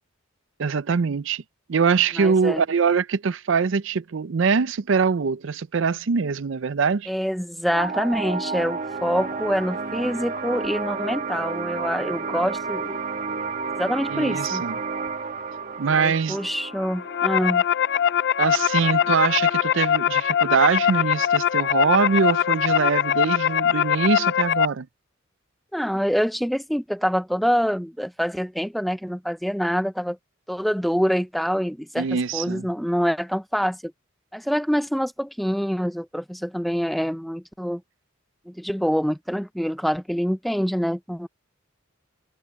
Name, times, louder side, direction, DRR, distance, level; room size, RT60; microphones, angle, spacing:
voice 1, 0.6-1.4 1.7-7.1 14.1-14.8 15.8-16.4 18.4-24.9 32.0-32.7, right 5 dB, 60° right, 0.5 m, -23 dB
voice 2, 2.2-2.6 7.1-13.0 13.8-14.7 15.9-17.6 25.7-30.2 30.5-33.9 34.3-37.8 38.5-41.3, equal, ahead, 0.5 m, -25 dB
sound 1, 7.7-18.7, right 4 dB, 40° right, 1.4 m, -31 dB
sound 2, 16.8-24.7, left 9 dB, 55° left, 0.5 m, -22 dB
head